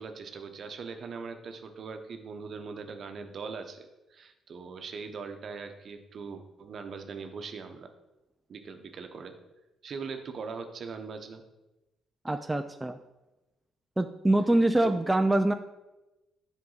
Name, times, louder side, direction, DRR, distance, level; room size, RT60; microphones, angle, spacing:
voice 1, 0.0-7.9 8.5-9.3 9.8-11.4 14.8-15.0, right 5 dB, 55° right, 6 dB, 0.9 m, -41 dB
voice 2, 12.2-13.0 14.0-15.5, right 1 dB, 15° right, 7 dB, 0.4 m, -24 dB
7.6 x 5.3 x 4.0 m, 1.0 s
supercardioid pair, 65°, 0 cm